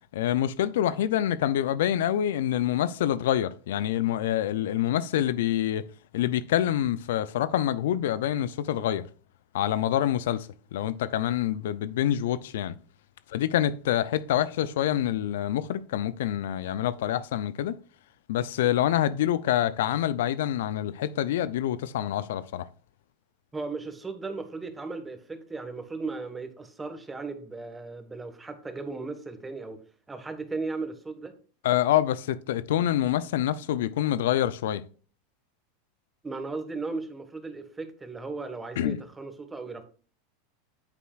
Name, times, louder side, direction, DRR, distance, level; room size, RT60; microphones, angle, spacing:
voice 1, 0.1-5.9 6.1-9.0 9.5-12.7 13.3-17.7 18.3-22.6 31.6-34.8 38.8-39.0, left 11 dB, 75° left, 0.4 m, -26 dB
voice 2, 23.5-29.8 30.1-31.3 36.2-39.8, right 3 dB, 15° right, 1.5 m, -36 dB
9.0 x 7.0 x 2.4 m
hypercardioid pair, 100°, 0 cm